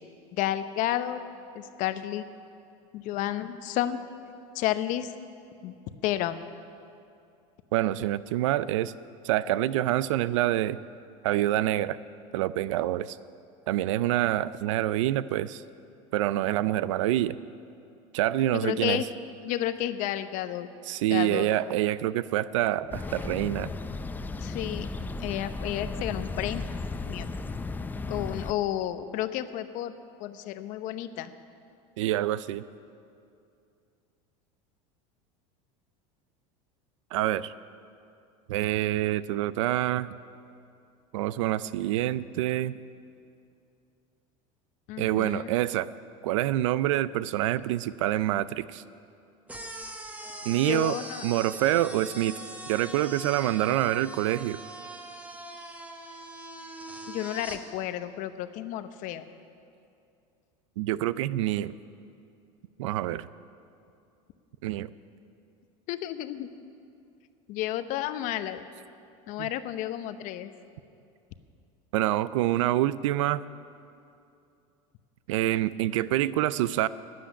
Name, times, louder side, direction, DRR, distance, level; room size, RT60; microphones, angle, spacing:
voice 1, 0.4-1.2 1.5-2.3 2.9-4.0 4.5-5.1 5.6-5.7 6.0-6.4 18.6-19.0 19.4-20.7 21.1-21.5 24.4-24.9 25.2-26.6 27.1-27.3 28.1-29.9 30.2-31.3 44.9-45.5 50.7-51.2 57.1-59.2 65.9-66.5 67.5-68.6 69.3-70.5, left 13 dB, 55° left, 11 dB, 0.8 m, -31 dB
voice 2, 7.7-8.9 9.2-10.8 11.2-12.0 12.3-13.2 13.7-15.6 16.1-17.4 18.1-19.1 20.9-23.7 32.0-32.6 37.1-37.5 38.5-40.1 41.1-42.8 45.0-45.9 46.2-48.8 50.5-51.0 51.2-52.4 52.7-54.6 60.8-61.7 62.8-63.3 64.6-64.9 69.4-69.5 71.9-73.4 75.3-76.9, right 14 dB, 85° right, 17 dB, 0.5 m, -26 dB
sound 1, 22.9-28.5, left 3 dB, 10° left, 0.4 m, -35 dB
sound 2, 49.5-57.6, right 1 dB, 10° right, 1.2 m, -42 dB
12.5 x 7.8 x 10.0 m, 2.5 s
supercardioid pair, 120°, 16 cm